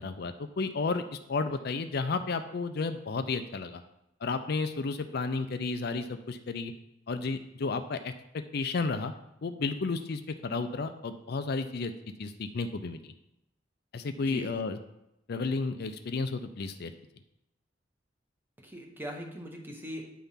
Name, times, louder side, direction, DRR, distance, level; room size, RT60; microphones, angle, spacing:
voice 1, 0.0-3.8 4.2-6.7 7.1-9.1 9.4-11.9 12.2-13.1 13.9-14.8 15.3-16.9, left 4 dB, 60° left, 8 dB, 0.5 m, -32 dB
voice 2, 18.6-20.0, equal, 10° right, 1 dB, 1.2 m, -40 dB
9.3 x 3.5 x 5.7 m, 0.86 s
head